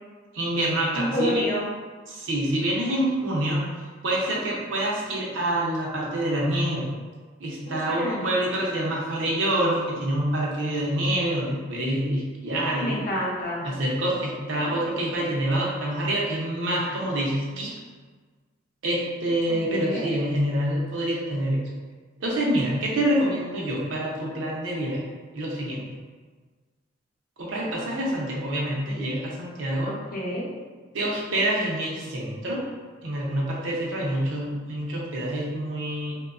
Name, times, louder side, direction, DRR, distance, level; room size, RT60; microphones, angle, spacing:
voice 1, 0.3-1.4 2.1-3.6 4.0-6.9 7.4-13.1 13.6-17.7 18.8-21.6 22.2-25.0 25.3-25.9 27.4-29.9 30.9-32.6 33.0-36.2, right 1 dB, 85° right, -4 dB, 0.6 m, -26 dB
voice 2, 0.9-1.7 7.7-8.2 12.7-13.6 19.7-20.1 29.8-30.5, equal, 50° left, -4 dB, 0.6 m, -28 dB
2.9 x 2.2 x 2.4 m, 1.4 s
head